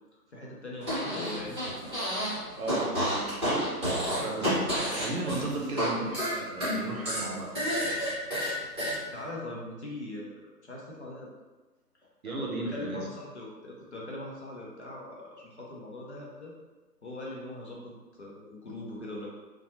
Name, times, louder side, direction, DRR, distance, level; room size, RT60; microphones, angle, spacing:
voice 1, 0.3-1.9 4.8-5.0 5.7-5.9 9.1-11.3 12.3-16.5 17.0-19.3, left 2 dB, 45° left, -4 dB, 0.5 m, -41 dB
Fart, 0.8-2.4 2.6-5.9 6.1-8.9, equal, 15° right, 1.0 m, -30 dB
voice 2, 2.6-3.7 4.1-7.8 12.2-13.1, right 2 dB, 60° right, -1 dB, 0.7 m, -35 dB
2.6 x 2.2 x 2.6 m, 1.2 s
figure-of-eight pair, 145°, 49 cm